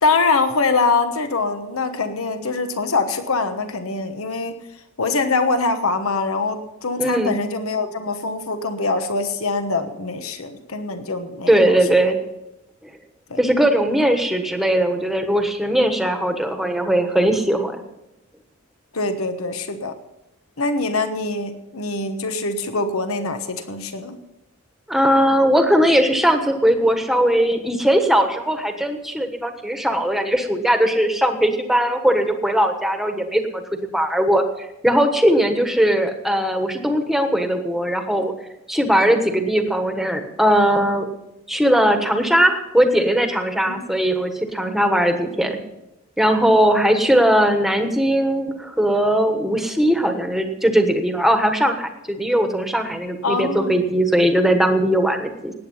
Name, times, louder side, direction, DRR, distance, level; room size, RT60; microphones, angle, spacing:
voice 1, 0.0-4.6 5.0-11.8 13.3-13.4 18.9-19.9 20.6-24.2 43.7-43.9 44.6-44.8 53.2-53.8, left 3 dB, 75° left, 8 dB, 1.2 m, -23 dB
voice 2, 7.0-7.4 11.5-12.2 13.4-17.8 24.9-34.4 34.8-38.3 38.7-41.1 41.5-45.6 46.2-55.5, right 1 dB, ahead, 5 dB, 1.3 m, -19 dB
18.5 x 8.9 x 5.6 m, 0.90 s
head